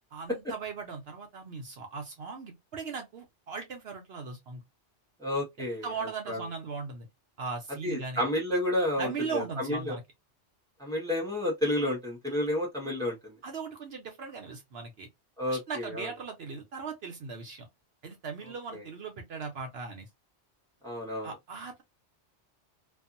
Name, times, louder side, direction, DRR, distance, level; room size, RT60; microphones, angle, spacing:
voice 1, 0.1-4.6 5.6-7.1 7.4-8.2 9.0-10.0 13.4-15.1 15.5-17.7 18.0-20.1 21.2-21.8, right 5 dB, 60° right, 0.9 m, -38 dB
voice 2, 5.2-5.9 6.3-6.4 7.8-10.0 10.8-13.4 15.4-16.1 18.7-18.8 20.8-21.3, left 1 dB, 5° left, 1.1 m, -31 dB
2.7 x 2.5 x 2.4 m
omnidirectional pair, 1.2 m